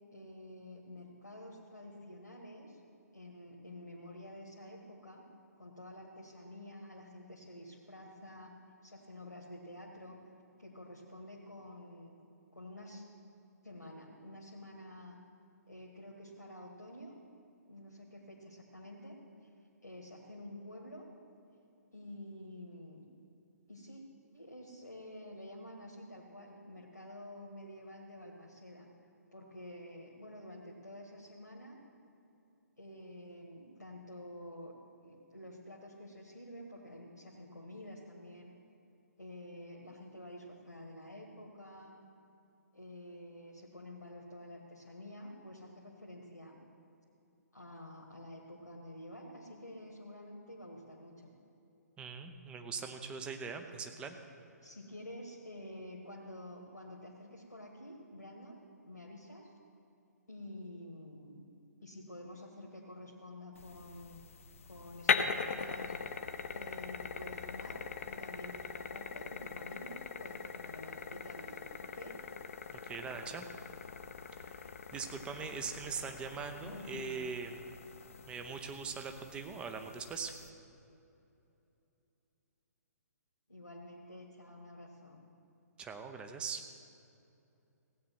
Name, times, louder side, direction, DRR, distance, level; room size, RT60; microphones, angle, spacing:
voice 1, 0.1-2.8 3.1-5.2 5.6-8.5 8.8-10.2 10.6-12.2 12.5-13.0 13.6-15.2 15.7-17.2 17.7-19.5 19.8-21.1 21.9-23.1 23.7-24.0 24.3-28.9 29.3-31.8 32.8-34.7 35.0-38.5 39.2-42.0 42.7-46.6 47.5-51.3 54.6-59.5 60.3-61.5 61.8-64.2 64.6-66.0 66.5-72.2 76.6-77.2 83.5-85.2, left 1 dB, 80° left, -2 dB, 1.8 m, -49 dB
voice 2, 52.0-54.2 72.8-73.5 74.4-77.7 78.3-80.3 85.8-86.6, right 5 dB, 10° right, 6 dB, 0.8 m, -41 dB
sound 1, 63.6-80.5, left 6 dB, 50° left, 0.8 m, -41 dB
16.0 x 8.6 x 6.1 m, 2.7 s
figure-of-eight pair, 130°, 9 cm